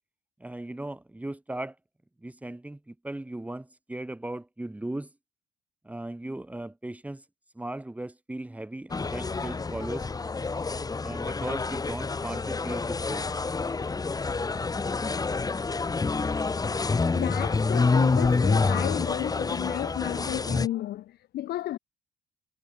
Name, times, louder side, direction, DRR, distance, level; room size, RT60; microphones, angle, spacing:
voice 1, 0.4-1.8 2.2-5.1 5.8-7.2 7.6-10.1 11.0-13.3, right 1 dB, 10° right, 5.7 m, -37 dB
sound 1, 8.9-20.7, left 4 dB, 20° left, 3.7 m, -27 dB
voice 2, 17.1-21.8, left 14 dB, 70° left, 5.9 m, -33 dB
cardioid pair, 110°, 17 cm